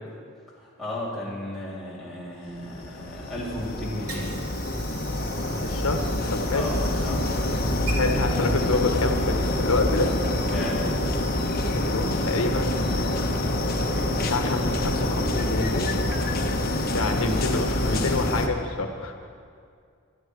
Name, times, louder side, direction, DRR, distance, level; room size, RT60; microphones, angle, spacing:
voice 1, 0.6-4.4 6.5-7.8 10.5-10.9, left 1 dB, ahead, -8 dB, 3.4 m, -34 dB
sound 1, 2.6-18.5, left 1 dB, 45° left, 1.1 m, -26 dB
Water / Sink (filling or washing), 3.9-9.6, right 3 dB, 85° right, 3.6 m, -42 dB
voice 2, 5.6-6.7 8.0-10.1 11.7-13.3 14.2-16.1 16.9-19.1, left 2 dB, 75° left, 4 dB, 1.2 m, -27 dB
24.5 x 9.9 x 4.7 m, 2.3 s
head